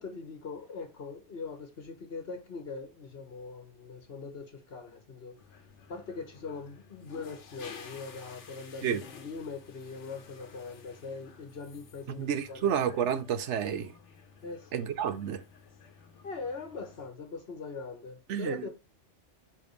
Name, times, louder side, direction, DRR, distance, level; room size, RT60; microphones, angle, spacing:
voice 1, 0.0-5.4 5.9-12.7 14.4-14.9 16.2-18.7, left 4 dB, 60° left, 1.4 m, -41 dB
sound 1, 5.4-17.1, left 6 dB, 85° left, 1.3 m, -53 dB
voice 2, 12.1-13.9 14.7-15.4 18.3-18.7, right 8 dB, 85° right, 1.0 m, -30 dB
5.8 x 5.1 x 3.2 m
omnidirectional pair, 1.2 m